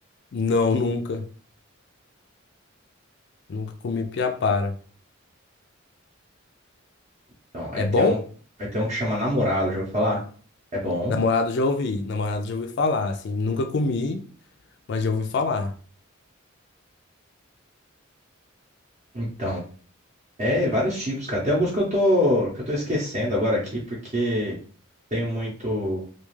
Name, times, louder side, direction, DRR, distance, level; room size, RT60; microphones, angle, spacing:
voice 1, 0.3-1.2 3.5-4.8 7.7-8.2 11.1-14.2 14.9-15.7, left 3 dB, 55° left, 0.4 m, -24 dB
voice 2, 7.5-8.2 8.7-10.2 10.7-11.2 19.1-19.6 20.4-24.6 25.1-26.0, left 1 dB, 35° right, 0.7 m, -24 dB
2.4 x 2.3 x 3.0 m
head